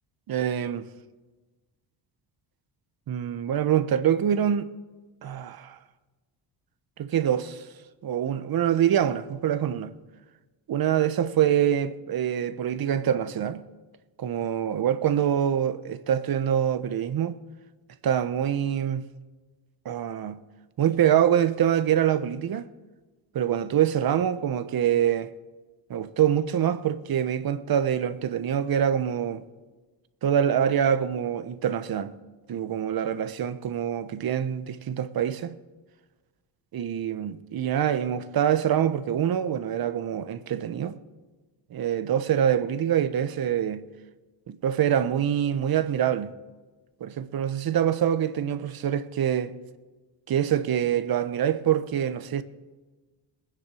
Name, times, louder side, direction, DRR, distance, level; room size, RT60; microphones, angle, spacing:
voice 1, 0.3-0.9 3.1-4.7 5.2-5.8 7.0-7.7 8.0-9.9 10.7-13.6 14.2-17.4 18.0-19.0 19.8-20.4 20.8-22.7 23.3-25.3 25.9-29.4 30.2-32.1 32.5-35.6 36.7-41.0 41.7-43.8 44.5-46.3 47.0-49.6 50.3-52.4, right 9 dB, 55° right, 1.0 m, -25 dB
21.5 x 9.5 x 5.0 m
cardioid pair, 95°, 44 cm